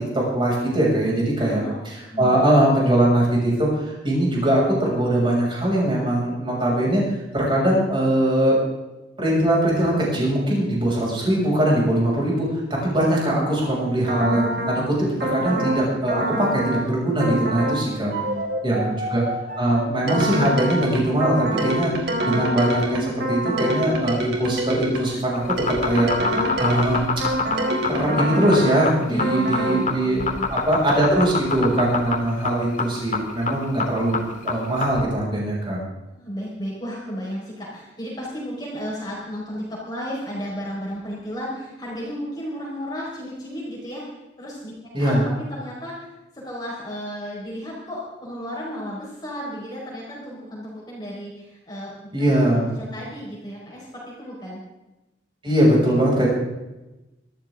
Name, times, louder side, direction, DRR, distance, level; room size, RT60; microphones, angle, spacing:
voice 1, 0.1-7.0 7.3-8.6 9.2-12.5 12.8-18.1 18.6-19.2 19.6-21.9 22.3-25.4 25.8-27.0 27.9-30.2 30.5-35.8 44.9-45.2 52.1-52.7 55.4-56.3, right 1 dB, 25° right, -4 dB, 6.6 m, -21 dB
voice 2, 1.4-1.8 2.1-2.4 18.1-19.0 29.1-30.5 36.1-44.0 44.4-54.6, equal, 20° left, -5 dB, 4.7 m, -34 dB
sound 1, 14.1-14.8 15.2-15.8 16.1-16.8 17.2-17.8 18.1-25.2 25.6-28.8 29.2-29.8, equal, 60° right, 3.9 m, -26 dB
sound 2, 25.4-35.0, left 4 dB, 45° left, 2.0 m, -26 dB
24.0 x 14.5 x 3.8 m, 1.0 s
head